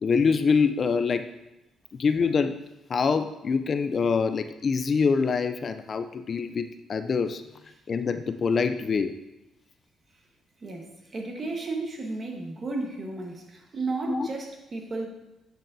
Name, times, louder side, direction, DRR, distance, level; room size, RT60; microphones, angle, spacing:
voice 1, 0.0-1.3 1.9-2.6 2.9-7.4 7.9-9.2 14.1-14.3, left 5 dB, 40° left, 9 dB, 0.3 m, -25 dB
voice 2, 10.6-15.1, right 3 dB, 35° right, 2 dB, 1.2 m, -33 dB
8.4 x 6.1 x 2.6 m, 0.93 s
cardioid pair, 115°, 0 cm